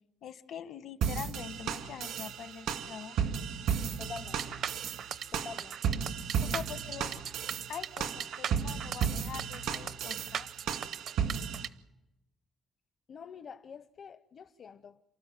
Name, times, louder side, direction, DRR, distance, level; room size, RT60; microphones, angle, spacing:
voice 1, 0.2-3.2 6.4-7.2 7.7-10.5, left 9 dB, 70° left, 1.4 m, -44 dB
sound 1, 1.0-11.7, right 7 dB, 85° right, 1.9 m, -34 dB
voice 2, 4.0-4.5 5.3-5.8 13.1-15.0, left 6 dB, 50° left, 0.8 m, -46 dB
sound 2, 4.2-11.7, right 8 dB, 65° right, 0.7 m, -39 dB
29.0 x 13.0 x 9.3 m
cardioid pair, 90°, 0 cm